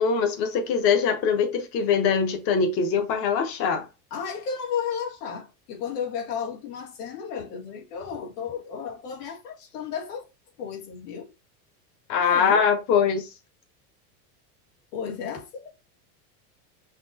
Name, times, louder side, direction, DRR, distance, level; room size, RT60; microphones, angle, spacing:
voice 1, 0.0-3.9 12.1-13.3, left 6 dB, 30° left, 0.9 m, -22 dB
voice 2, 4.1-10.2 10.6-11.3 12.2-12.6 14.9-15.7, left 7 dB, 90° left, 2.4 m, -33 dB
5.9 x 3.0 x 2.7 m
supercardioid pair, 180°, 45 cm